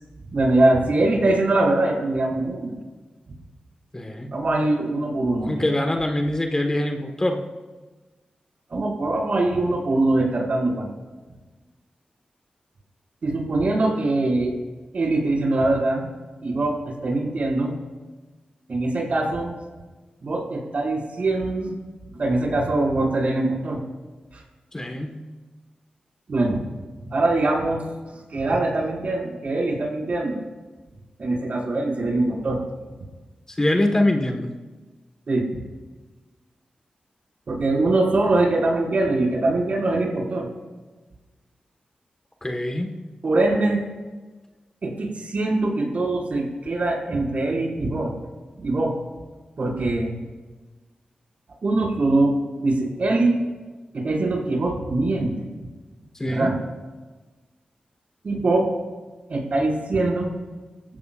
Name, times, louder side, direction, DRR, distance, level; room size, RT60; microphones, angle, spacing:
voice 1, 0.3-2.7 4.3-5.7 8.7-10.9 13.2-14.5 14.9-16.1 16.4-17.7 18.7-19.6 20.2-21.8 22.2-23.8 24.3-24.4 26.3-26.6 27.1-27.8 28.3-30.4 31.2-32.6 35.3-35.6 37.5-40.5 43.2-43.8 44.8-48.1 48.6-48.9 49.6-50.2 51.6-52.3 52.6-53.4 53.9-55.5 56.3-56.6 58.2-58.7 59.3-60.3, right 2 dB, 60° right, -2 dB, 5.7 m, -22 dB
voice 2, 3.9-4.3 5.5-7.4 24.7-25.2 33.6-34.5 42.4-42.9 56.2-56.5, left 1 dB, 20° left, 3 dB, 1.6 m, -23 dB
25.0 x 15.5 x 2.6 m, 1.3 s
cardioid pair, 70°, 3 cm